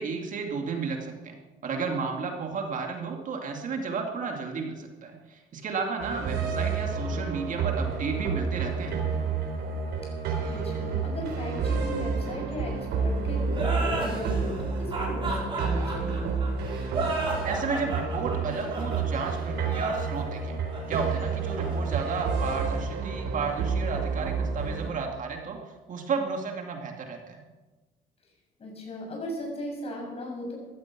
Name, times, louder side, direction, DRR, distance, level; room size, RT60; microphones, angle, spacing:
voice 1, 0.0-1.4 1.6-8.9 17.4-20.6 20.9-25.6 25.9-27.4, right 5 dB, 50° right, 3 dB, 2.5 m, -32 dB
sound 1, 6.0-24.9, right 5 dB, 75° right, 3.9 m, -30 dB
voice 2, 10.5-16.3 28.6-30.6, left 1 dB, 35° left, 0 dB, 6.9 m, -36 dB
sound 2, 13.5-22.8, right 2 dB, 30° right, 6.2 m, -34 dB
15.5 x 13.5 x 6.1 m, 1.2 s
cardioid pair, 110°, 17 cm